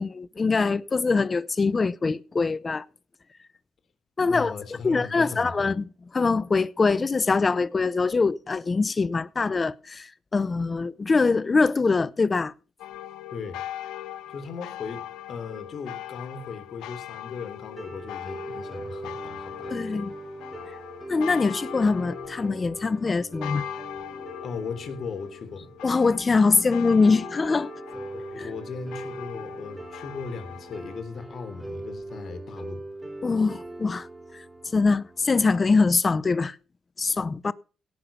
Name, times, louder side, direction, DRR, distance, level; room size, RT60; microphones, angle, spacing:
voice 1, 0.0-2.8 4.2-4.5 4.8-5.9 6.1-12.5 19.7-20.1 21.1-23.6 25.8-27.7 28.4-28.5 33.2-34.1 34.3-34.4 34.7-36.6 37.0-37.5, left 4 dB, 30° left, 0.6 m, -23 dB
voice 2, 4.3-5.6 13.3-13.6 14.3-20.1 24.4-25.7 28.3-32.8, left 4 dB, 55° left, 3.4 m, -38 dB
sound 1, 12.8-31.0, left 13 dB, 90° left, 1.0 m, -41 dB
sound 2, 17.7-35.7, right 2 dB, 15° right, 4.2 m, -41 dB
17.0 x 6.8 x 5.6 m
cardioid pair, 90°, 0 cm